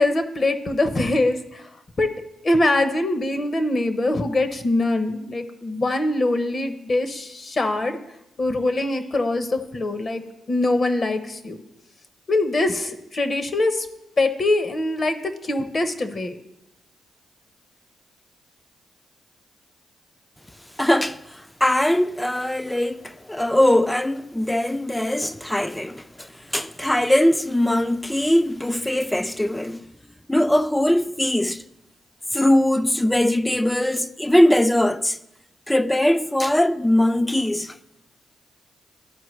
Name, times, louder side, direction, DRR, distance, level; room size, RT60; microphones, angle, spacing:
voice 1, 0.0-1.4 2.0-2.1 2.4-8.0 8.4-10.2 10.5-11.6 12.3-13.9 14.2-16.3, left 2 dB, 45° left, 0.8 m, -23 dB
voice 2, 20.8-29.8 30.3-31.6 32.3-35.2 35.7-37.8, left 1 dB, 10° left, 0.4 m, -21 dB
13.0 x 4.4 x 3.2 m
supercardioid pair, 60°, 0 cm